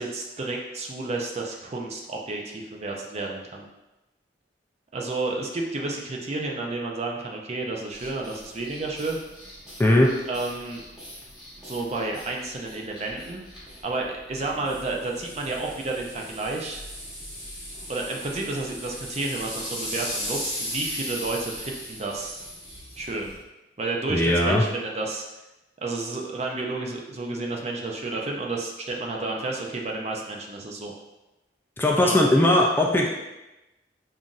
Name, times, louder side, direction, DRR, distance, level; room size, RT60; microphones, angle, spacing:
voice 1, 0.0-3.7 4.9-9.2 10.3-10.8 11.6-13.4 13.8-16.8 17.9-22.4 23.0-23.3 23.8-25.2 25.8-31.0 32.0-32.2, right 2 dB, 40° right, 0 dB, 0.5 m, -31 dB
sound 1, 7.9-23.4, equal, 5° right, 1.4 m, -38 dB
voice 2, 9.8-10.1 24.1-24.6 31.8-33.1, left 1 dB, 10° left, -1 dB, 0.3 m, -19 dB
5.6 x 2.5 x 2.4 m, 0.99 s
head